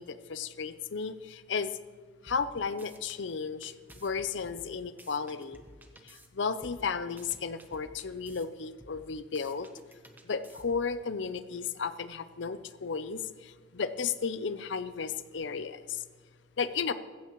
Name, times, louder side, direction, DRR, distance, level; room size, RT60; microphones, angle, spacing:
voice 1, 0.0-1.7 2.2-5.6 6.0-9.7 10.2-16.0 16.6-16.9, left 5 dB, 65° left, 13 dB, 0.6 m, -34 dB
sound 1, 2.3-3.2 3.6-6.3 6.6-8.5 8.8-11.0, right 1 dB, 10° right, 0.9 m, -53 dB
15.0 x 14.5 x 3.1 m, 1.5 s
head